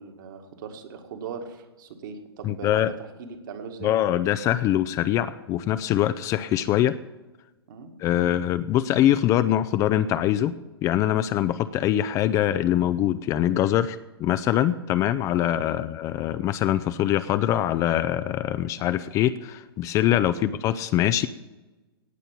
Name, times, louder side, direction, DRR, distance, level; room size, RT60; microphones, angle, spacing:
voice 1, 0.0-4.0 7.7-7.9 15.7-15.9 20.3-20.5, right 5 dB, 50° right, 4 dB, 1.9 m, -39 dB
voice 2, 2.4-2.9 3.8-7.0 8.0-10.5 10.8-21.3, left 12 dB, 25° left, 13 dB, 0.5 m, -23 dB
18.0 x 6.8 x 8.9 m, 1.1 s
figure-of-eight pair, 110°, 13 cm